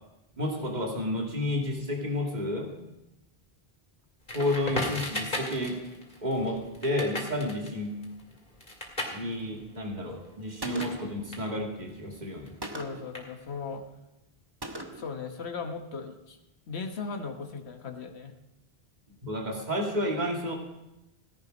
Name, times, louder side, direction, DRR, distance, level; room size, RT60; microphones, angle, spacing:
voice 1, 0.4-2.7 4.3-5.8 6.2-7.9 9.1-12.5 19.2-20.5, left 1 dB, 45° right, 0 dB, 2.5 m, -31 dB
Crackle, 4.3-11.0 11.3-13.7, left 1 dB, 50° left, 2.8 m, -37 dB
Gunshot gunfire, 10.6-11.2 12.6-13.1 14.6-15.2, right 1 dB, 25° right, 1.1 m, -39 dB
voice 2, 12.7-13.8 15.0-16.4 16.7-18.3, left 4 dB, 85° left, 5 dB, 1.5 m, -37 dB
17.0 x 11.0 x 5.2 m, 0.94 s
omnidirectional pair, 1.1 m